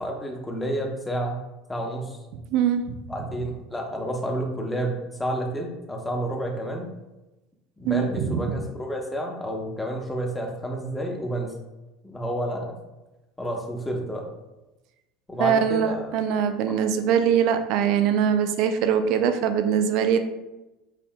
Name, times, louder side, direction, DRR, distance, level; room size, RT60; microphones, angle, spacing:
voice 1, 0.0-1.4 1.7-2.2 3.1-4.9 5.2-6.9 7.8-11.5 12.0-12.7 13.4-14.3 15.3-16.2, right 1 dB, 10° left, 0 dB, 0.9 m, -30 dB
voice 2, 2.5-3.0 7.8-8.6 15.4-20.2, right 8 dB, 55° right, 8 dB, 0.4 m, -22 dB
6.2 x 2.6 x 2.2 m, 1.0 s
figure-of-eight pair, 70°, 0 cm